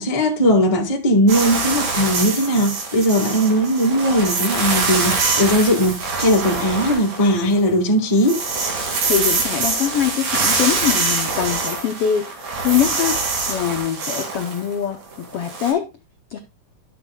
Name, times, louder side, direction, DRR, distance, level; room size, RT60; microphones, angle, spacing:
voice 1, 0.0-8.4, equal, 50° left, 0.4 m, -18 dB
sound 1, 1.3-7.7 8.0-15.7, right 4 dB, 80° right, 4.0 m, -24 dB
voice 2, 8.8-15.9 16.3-16.4, left 9 dB, 80° left, 1.3 m, -23 dB
11.5 x 7.8 x 2.2 m
omnidirectional pair, 3.9 m